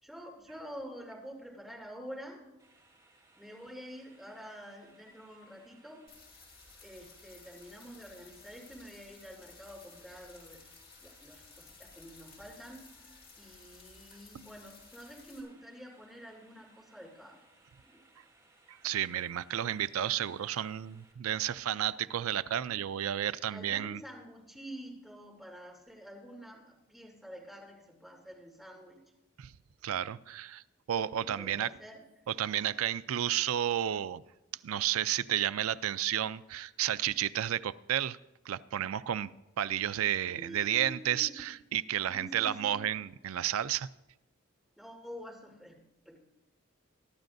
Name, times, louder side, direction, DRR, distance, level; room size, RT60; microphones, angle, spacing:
voice 1, 0.0-2.4 3.4-6.0 6.8-10.8 11.0-12.9 13.4-17.4 17.8-18.0 23.5-29.0 31.4-32.0 40.3-41.5 42.1-42.8 44.8-45.8 46.0-46.2, equal, ahead, -4 dB, 2.9 m, -48 dB
sound 1, 2.6-21.1, right 2 dB, 20° right, 2.9 m, -65 dB
sound 2, 6.1-15.4, left 5 dB, 45° left, 3.8 m, -56 dB
voice 2, 18.7-24.0 29.4-29.5 29.8-30.6 30.9-31.7 32.3-34.2 34.6-38.2 38.5-39.3 39.6-43.9, right 11 dB, 80° right, 16 dB, 0.4 m, -32 dB
23.0 x 12.0 x 2.6 m, 0.97 s
head